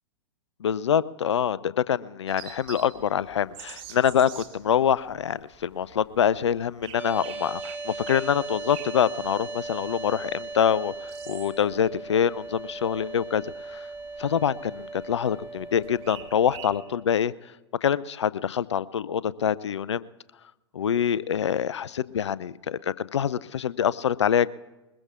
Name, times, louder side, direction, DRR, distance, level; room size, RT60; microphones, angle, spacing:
voice 1, 0.6-10.9 11.3-13.4 13.7-13.8 14.2-17.3 17.8-20.1 20.7-24.5, left 8 dB, 75° left, 19 dB, 0.5 m, -25 dB
sound 1, 2.3-16.8, right 9 dB, 35° right, 1.9 m, -48 dB
sound 2, 7.0-17.0, right 3 dB, 15° right, 1.4 m, -38 dB
21.5 x 21.0 x 2.5 m, 1.1 s
figure-of-eight pair, 100°, 15 cm